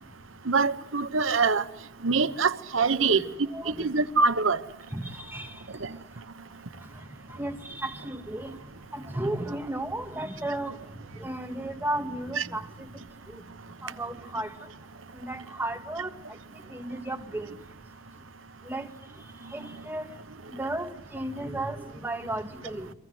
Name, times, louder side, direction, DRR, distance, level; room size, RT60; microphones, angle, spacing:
voice 1, 0.5-1.6 2.0-3.2 3.7-4.6 12.4-12.5, right 4 dB, 80° right, 1.0 m, -24 dB
voice 2, 3.5-3.9 4.9-5.5 6.8-6.9 7.3-8.6 8.9-10.8 11.2-12.9 13.3-13.4 13.8-14.5 15.1-16.1 16.7-17.5 18.6-18.9 19.5-20.1 20.5-22.9, right 1 dB, 10° right, 2.1 m, -34 dB
30.0 x 24.5 x 7.8 m
head